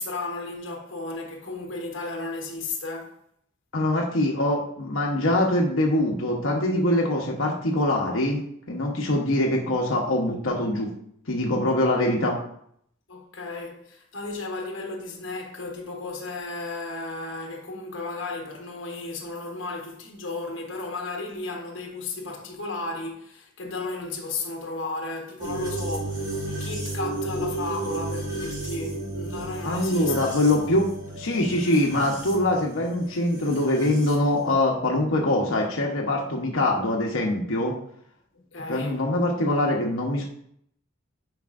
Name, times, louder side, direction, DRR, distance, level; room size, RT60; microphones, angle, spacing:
voice 1, 0.0-3.2 13.1-30.2 38.3-39.0, left 3 dB, 65° left, 1.3 m, -34 dB
voice 2, 3.7-8.4 8.7-10.9 11.3-12.4 29.6-30.9 31.1-37.7 38.7-40.2, left 1 dB, 85° left, 1.1 m, -23 dB
sound 1, 25.4-34.1, right 2 dB, 20° right, 1.9 m, -33 dB
9.4 x 5.2 x 2.6 m
head